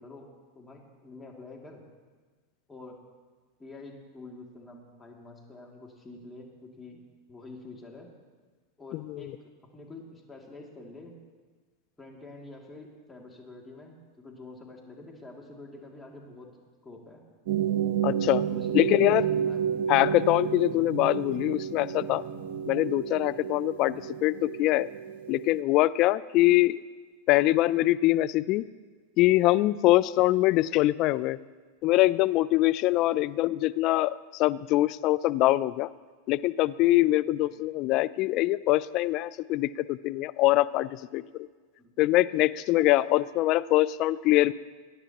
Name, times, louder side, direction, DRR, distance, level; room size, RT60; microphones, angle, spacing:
voice 1, 0.0-1.8 2.7-2.9 3.6-8.1 8.8-9.3 9.7-11.2 12.0-16.5 16.8-17.2 18.2-19.2 19.5-19.7 32.9-33.1 37.2-37.5 41.8-41.9, left 2 dB, 15° left, -1 dB, 2.5 m, -47 dB
voice 2, 8.9-9.2 18.0-18.4 18.7-19.2 19.9-22.2 22.7-24.0 24.2-24.9 25.3-26.8 27.3-28.6 29.2-31.4 31.8-35.9 36.3-41.2 42.0-44.5, left 17 dB, 50° left, 18 dB, 0.4 m, -23 dB
sound 1, 17.5-25.6, right 9 dB, 75° right, 0.8 m, -31 dB
21.0 x 10.0 x 3.0 m, 1.4 s
hypercardioid pair, 110°, 0 cm